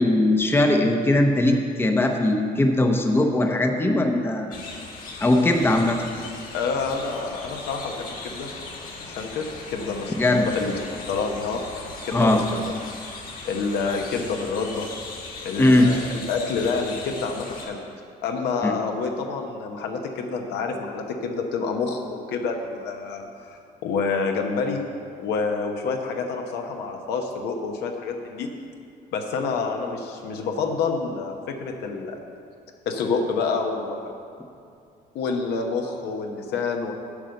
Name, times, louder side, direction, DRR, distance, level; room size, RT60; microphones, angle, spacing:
voice 1, 0.0-4.5 5.2-6.0 10.2-10.5 12.1-12.4 15.6-15.9 18.6-18.7, left 1 dB, 15° left, 3 dB, 0.8 m, -20 dB
sound 1, 4.5-17.7, left 3 dB, 55° left, 1.9 m, -38 dB
voice 2, 6.5-8.5 9.0-10.7 11.1-11.6 12.0-12.7 13.4-14.9 15.4-16.0 16.3-17.8 18.2-24.8 25.2-28.5 29.1-32.2 32.9-34.1 35.1-36.9, left 4 dB, 80° left, 3 dB, 1.0 m, -28 dB
8.4 x 5.4 x 7.7 m, 2.5 s
cardioid pair, 110°, 17 cm